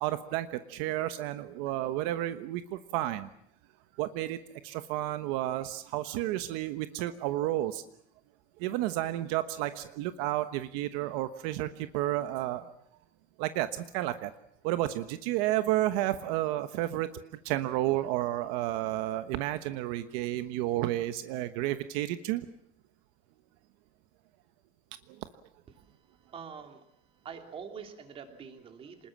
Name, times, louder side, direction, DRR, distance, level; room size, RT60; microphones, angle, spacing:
voice 1, 0.0-3.3 4.0-4.4 4.6-7.8 8.6-12.7 13.4-14.3 14.6-17.1 17.4-22.5 25.1-25.2, right 14 dB, 80° right, 10 dB, 1.2 m, -31 dB
voice 2, 26.3-26.9 27.2-29.1, right 6 dB, 30° right, 5 dB, 3.0 m, -45 dB
26.0 x 20.5 x 7.4 m, 0.71 s
cardioid pair, 160°, 19 cm